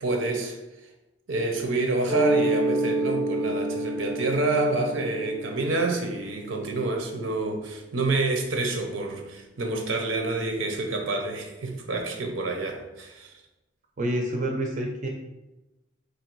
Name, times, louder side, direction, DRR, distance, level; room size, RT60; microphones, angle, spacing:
voice 1, 0.0-0.6 1.3-13.3, right 2 dB, 80° right, 3 dB, 0.7 m, -28 dB
Mallet percussion, 2.1-7.6, right 1 dB, 5° left, 0.5 m, -29 dB
voice 2, 14.0-15.1, right 1 dB, 40° right, 0 dB, 0.5 m, -28 dB
3.3 x 2.7 x 4.5 m, 0.99 s
head